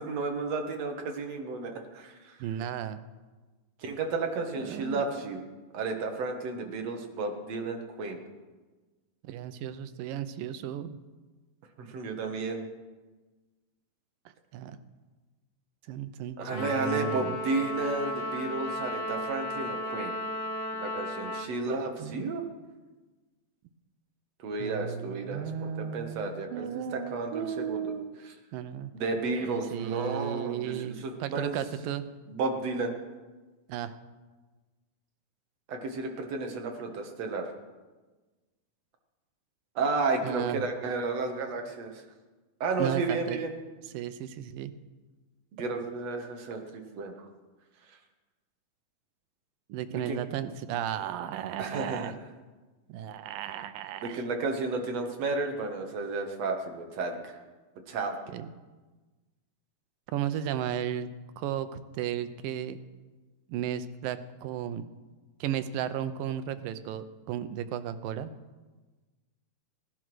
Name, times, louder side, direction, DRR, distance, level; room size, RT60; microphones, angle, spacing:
voice 1, 0.0-2.4 3.8-5.4 5.7-8.2 11.8-12.7 16.4-20.2 20.7-22.4 24.4-27.9 28.9-31.6 32.3-33.0 35.7-37.5 39.8-42.0 42.6-43.5 45.5-47.3 49.9-50.2 51.6-52.1 54.0-57.4 57.9-58.2, right 3 dB, 55° right, 3 dB, 2.4 m, -32 dB
voice 2, 2.4-3.0 4.6-5.0 9.2-11.0 14.5-14.8 15.9-17.4 22.0-22.3 24.6-28.1 28.5-28.9 29.5-32.0 33.7-33.9 40.2-40.6 42.8-43.4 43.9-44.7 49.7-52.2 52.9-54.2 58.3-58.5 60.1-61.1 61.4-62.8 63.5-64.9 65.4-68.3, right 10 dB, 90° right, 11 dB, 2.5 m, -34 dB
Trumpet, 16.5-21.5, left 1 dB, 50° left, 3.1 m, -34 dB
17.5 x 11.0 x 6.2 m, 1.3 s
omnidirectional pair, 3.9 m